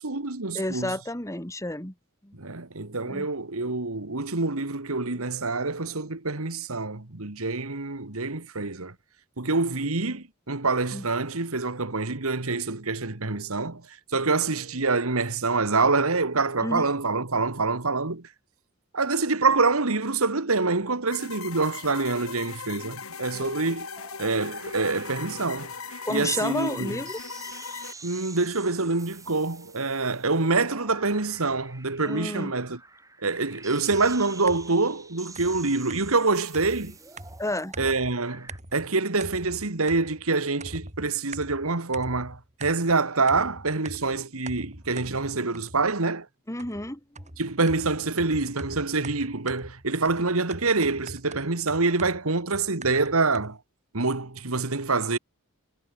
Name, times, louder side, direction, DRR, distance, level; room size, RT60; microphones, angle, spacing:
voice 1, 0.0-0.9 2.4-8.9 9.4-13.8 14.1-18.2 18.9-23.9 24.2-25.7 26.1-27.0 28.0-32.8 33.2-36.9 37.8-46.3 47.4-53.6 53.9-55.2, right 3 dB, 75° right, 2.0 m, -26 dB
voice 2, 0.5-1.9 2.2-2.4 3.1-3.3 10.9-11.1 16.6-16.9 26.1-27.2 32.0-32.5 37.4-37.7 46.5-47.2, left 1 dB, 15° left, 3.6 m, -31 dB
sound 1, 21.1-27.9, left 5 dB, 75° left, 5.5 m, -39 dB
sound 2, 23.9-38.6, right 4 dB, 15° right, 5.6 m, -48 dB
sound 3, 33.9-34.8 35.3-38.2 38.5-38.9 39.2-40.3 40.6-43.0 43.3-46.0 46.6-53.6, right 2 dB, 35° right, 5.7 m, -43 dB
head